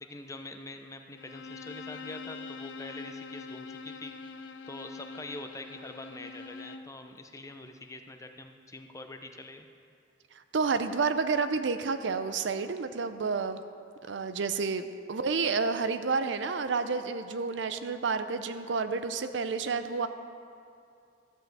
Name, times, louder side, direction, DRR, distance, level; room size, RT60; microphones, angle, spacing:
voice 1, 0.0-4.1 4.7-9.7, left 2 dB, 15° left, 6 dB, 0.6 m, -44 dB
Bowed string instrument, 1.2-7.0, left 4 dB, 75° left, 0.6 m, -44 dB
voice 2, 10.5-13.6 14.1-20.1, right 4 dB, 75° right, 10 dB, 0.6 m, -30 dB
12.5 x 5.6 x 7.6 m, 2.4 s
head